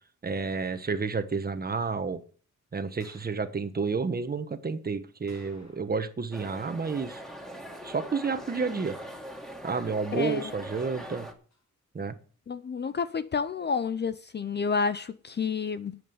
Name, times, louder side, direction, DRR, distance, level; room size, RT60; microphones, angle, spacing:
voice 1, 0.2-2.2 2.7-7.2 7.8-9.0 9.6-11.3 11.9-12.1, right 4 dB, 30° right, 1.3 m, -30 dB
sound 1, 3.0-3.4 5.3-6.1 6.4-6.5 11.5-11.6, left 2 dB, 65° left, 7.2 m, -55 dB
sound 2, 6.3-11.3, equal, ahead, 2.4 m, -42 dB
voice 2, 12.5-16.0, left 5 dB, 35° left, 0.6 m, -30 dB
11.0 x 7.9 x 7.1 m
wide cardioid pair, 120°, 30 cm